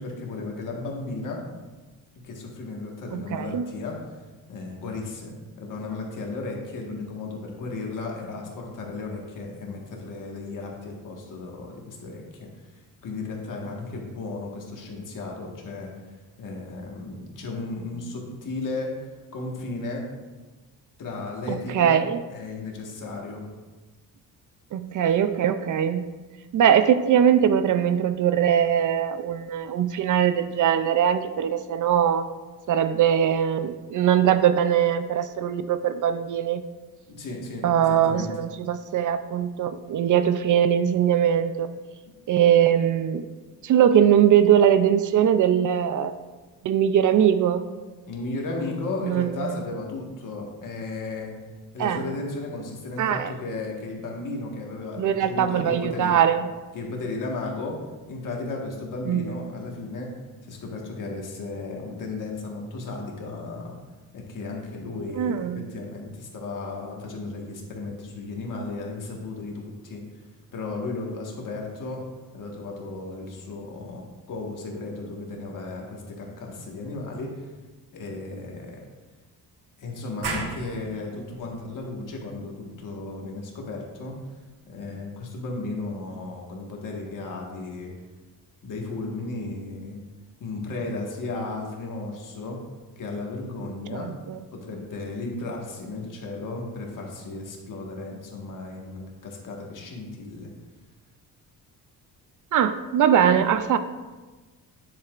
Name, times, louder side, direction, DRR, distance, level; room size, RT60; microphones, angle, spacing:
voice 1, 0.0-1.4 2.2-4.0 4.5-15.9 16.4-18.9 19.3-20.1 21.0-22.0 22.3-23.4 37.1-38.3 48.1-51.4 51.7-56.2 56.7-57.8 58.1-60.1 60.4-63.8 64.1-70.0 70.5-72.0 72.3-77.5 77.9-78.8 79.8-84.2 84.7-87.9 88.6-90.0 90.4-92.6 93.0-94.1 94.5-100.5, left 3 dB, 55° left, -1 dB, 1.6 m, -34 dB
voice 2, 3.1-3.6 21.5-22.2 24.7-26.1 26.5-32.2 32.7-36.6 37.6-41.7 42.3-43.3 43.6-46.1 46.6-47.6 49.0-49.6 51.8-52.1 53.0-53.3 55.0-56.4 59.1-59.4 65.1-65.7 93.9-94.4 102.5-103.8, right 9 dB, 55° right, 11 dB, 0.4 m, -21 dB
sound 1, 80.2-85.6, right 4 dB, 90° right, 1.5 m, -39 dB
9.7 x 7.7 x 2.5 m, 1.2 s
cardioid pair, 165°, 38 cm